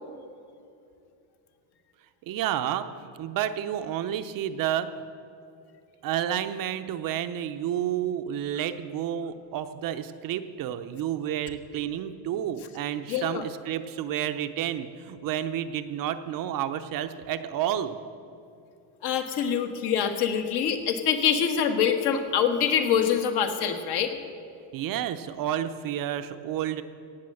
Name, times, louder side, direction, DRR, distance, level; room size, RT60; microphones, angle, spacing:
voice 1, 2.3-4.9 6.0-18.0 24.7-26.8, right 10 dB, 45° right, 10 dB, 0.7 m, -30 dB
voice 2, 13.1-13.4 19.0-24.2, left 8 dB, 55° left, 5 dB, 1.5 m, -25 dB
17.5 x 6.7 x 7.7 m, 2.6 s
cardioid pair, 140°, 47 cm